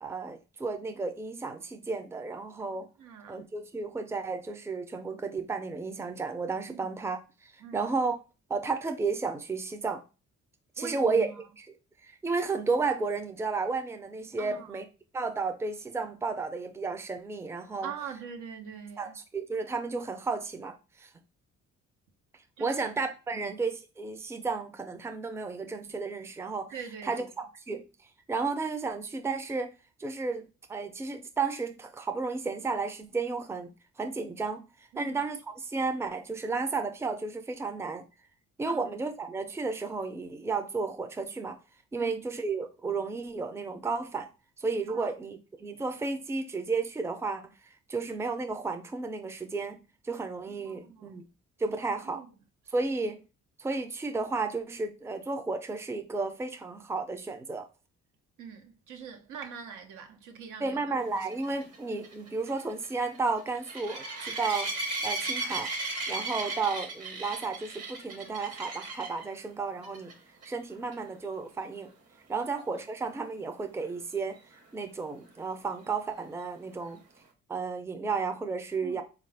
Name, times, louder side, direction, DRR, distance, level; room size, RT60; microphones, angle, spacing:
voice 1, 0.0-2.9 3.3-8.2 8.5-10.0 10.8-11.3 12.0-14.8 15.1-17.9 19.0-21.1 22.6-26.7 27.0-27.9 28.3-29.7 30.0-30.4 30.7-33.7 34.0-34.6 35.0-35.4 35.6-38.0 38.6-41.6 41.9-44.3 44.6-47.5 47.9-49.8 50.0-51.3 51.6-52.2 52.7-53.2 53.6-57.7 60.6-64.7 65.0-65.7 66.1-70.1 70.4-71.9 72.3-74.4 74.7-77.0 77.5-79.0, right 4 dB, 10° right, 0.4 m, -33 dB
voice 2, 3.0-3.5 6.7-6.9 7.6-7.9 10.8-11.4 14.4-14.8 17.8-19.2 22.6-22.8 23.3-23.5 26.7-27.3 34.9-35.2 38.7-39.0 42.0-42.2 44.9-45.1 50.5-51.2 52.0-52.3 52.7-52.8 58.4-60.8 61.1-61.3 61.5-61.6 72.4-72.5 78.8-79.0, right 7 dB, 80° right, 0.8 m, -43 dB
sound 1, 61.3-69.2 69.8-70.1 70.4-70.5 70.9-71.0 74.6-74.7, right 2 dB, 55° right, 1.1 m, -36 dB
3.7 x 2.4 x 3.3 m
cardioid pair, 90°, 30 cm